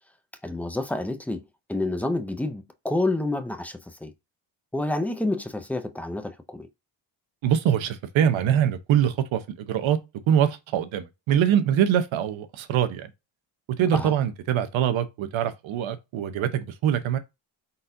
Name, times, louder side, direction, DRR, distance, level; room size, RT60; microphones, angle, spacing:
voice 1, 0.4-1.4 1.7-4.1 4.7-6.7 13.9-14.1, left 2 dB, 5° left, 0.4 m, -28 dB
voice 2, 7.4-10.0 10.3-13.1 13.8-17.2, right 9 dB, 70° right, 0.9 m, -23 dB
4.1 x 4.0 x 2.6 m
cardioid pair, 135°, 49 cm